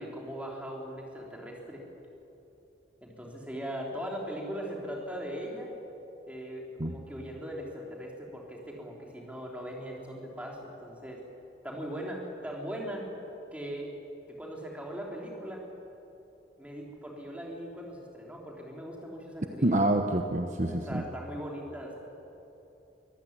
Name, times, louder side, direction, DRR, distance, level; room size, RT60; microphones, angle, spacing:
voice 1, 0.0-1.8 3.0-5.7 6.3-11.2 11.6-13.1 13.5-13.9 14.3-15.6 16.6-19.8 20.7-22.0, equal, 10° right, -1 dB, 3.6 m, -39 dB
voice 2, 19.6-21.0, right 1 dB, 45° right, 5 dB, 1.1 m, -27 dB
24.0 x 15.5 x 9.7 m, 3.0 s
head